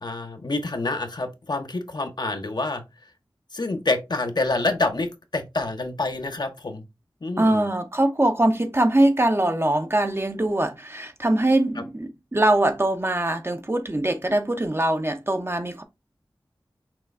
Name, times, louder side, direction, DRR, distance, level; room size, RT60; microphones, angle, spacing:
voice 1, 0.0-2.8 3.5-6.8 7.2-7.6, left 2 dB, 55° left, 0.8 m, -27 dB
voice 2, 7.4-15.8, right 1 dB, 30° right, 0.7 m, -22 dB
6.0 x 2.3 x 3.4 m
wide cardioid pair, 45°, 9 cm